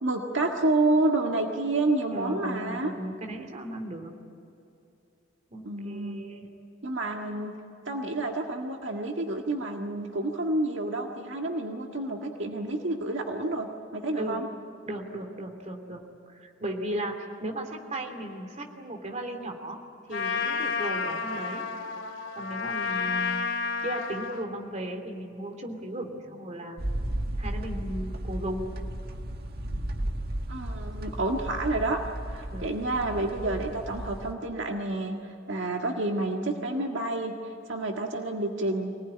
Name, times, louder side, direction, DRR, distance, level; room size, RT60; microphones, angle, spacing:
voice 1, 0.0-2.9 5.6-6.2 6.8-7.6 7.9-14.5 30.5-32.0 32.3-37.3 37.7-39.0, right 2 dB, 75° right, 2 dB, 1.8 m, -29 dB
voice 2, 2.1-4.1 5.5-6.5 14.2-14.4 14.9-16.0 16.3-17.1 17.4-19.8 20.1-21.6 22.4-23.4 23.8-26.8 27.4-28.7 32.5-32.7, right 1 dB, 40° right, 3 dB, 3.0 m, -36 dB
Trumpet, 20.1-24.4, left 4 dB, 75° left, 2.6 m, -31 dB
sound 1, 26.8-34.3, right 1 dB, 55° right, 1.6 m, -34 dB
25.0 x 19.0 x 10.0 m, 2.7 s
head